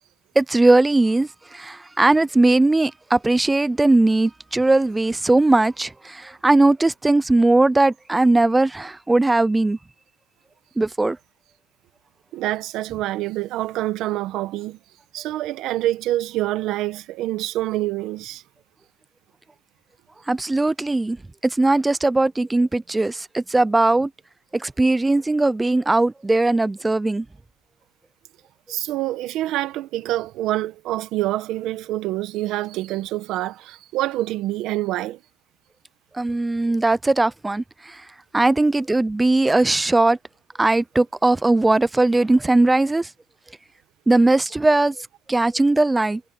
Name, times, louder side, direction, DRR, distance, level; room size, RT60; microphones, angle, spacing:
voice 1, 0.4-9.8 10.8-11.2 20.3-21.2 21.4-24.1 24.5-27.2 36.2-38.0 38.3-40.2 40.6-43.1 44.1-44.9 45.3-46.2, right 2 dB, 15° right, 0.7 m, -19 dB
voice 2, 12.3-14.8 15.1-18.4 28.7-35.2 38.4-38.5, right 15 dB, 75° right, 1.4 m, -26 dB
cardioid pair, 100°, 0 cm